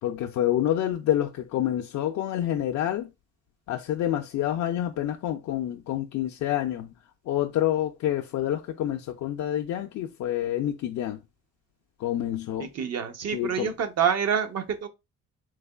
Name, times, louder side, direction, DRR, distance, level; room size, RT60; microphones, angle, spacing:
voice 1, 0.0-3.1 3.7-6.9 7.3-11.2 12.0-12.7 13.3-13.7, left 12 dB, 70° left, 0.4 m, -28 dB
voice 2, 12.6-14.9, right 7 dB, 55° right, 0.7 m, -27 dB
3.5 x 3.3 x 2.3 m
cardioid pair, 90°, 30 cm